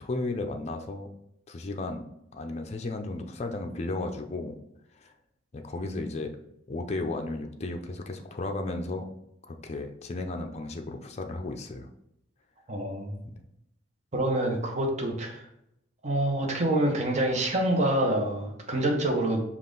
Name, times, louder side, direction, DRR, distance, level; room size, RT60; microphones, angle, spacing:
voice 1, 0.0-1.1 1.5-2.1 2.3-4.6 5.0-5.1 5.5-6.3 6.7-9.0 9.4-11.9 13.2-13.4, left 2 dB, 35° left, 4 dB, 0.5 m, -34 dB
voice 2, 12.7-13.2 14.1-15.5 16.0-19.4, right 1 dB, 40° right, 1 dB, 0.9 m, -26 dB
5.4 x 2.4 x 3.8 m, 0.80 s
head